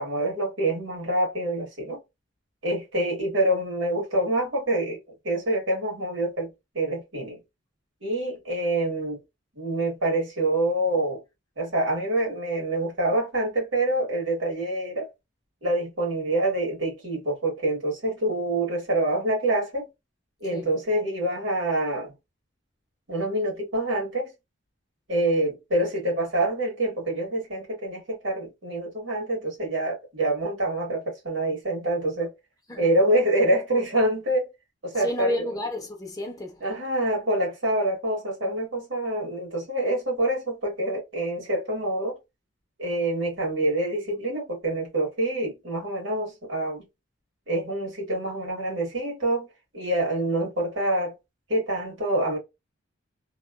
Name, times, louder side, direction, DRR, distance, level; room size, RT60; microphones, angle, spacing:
voice 1, 0.0-2.0 2.6-5.0 5.2-7.4 8.0-9.2 9.6-11.2 11.6-15.1 15.6-19.9 20.4-22.1 23.1-24.3 25.1-32.3 32.8-34.5 34.8-35.5 36.6-42.2 42.8-46.9 47.5-49.5 49.7-51.1 51.5-52.4, right 1 dB, 85° right, 1.6 m, -26 dB
voice 2, 34.9-36.6, left 1 dB, 20° left, 0.6 m, -31 dB
2.9 x 2.1 x 2.3 m
head